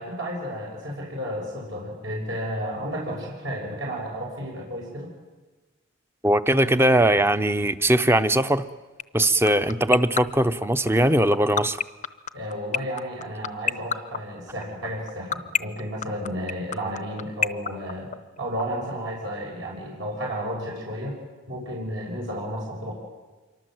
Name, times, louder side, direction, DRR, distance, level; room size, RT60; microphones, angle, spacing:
voice 1, 0.0-5.1 12.3-18.1 18.4-21.2 21.5-22.9, equal, 65° right, -3 dB, 6.5 m, -32 dB
voice 2, 6.2-8.7 9.1-11.8, right 1 dB, 10° right, 11 dB, 0.8 m, -20 dB
sound 1, 9.0-18.6, left 7 dB, 35° left, 0.7 m, -24 dB
26.5 x 23.5 x 7.9 m, 1.2 s
head